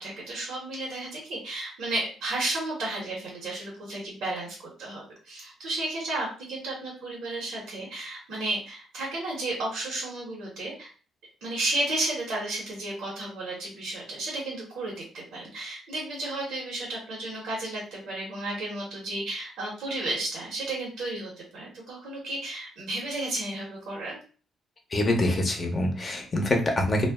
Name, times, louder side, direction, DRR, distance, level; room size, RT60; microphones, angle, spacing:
voice 1, 0.0-10.9 11.4-24.2, right 2 dB, 80° right, -4 dB, 1.1 m, -33 dB
voice 2, 24.9-27.1, left 1 dB, 35° left, 2 dB, 0.8 m, -25 dB
2.4 x 2.0 x 3.5 m, 0.39 s
cardioid pair, 90°, 0 cm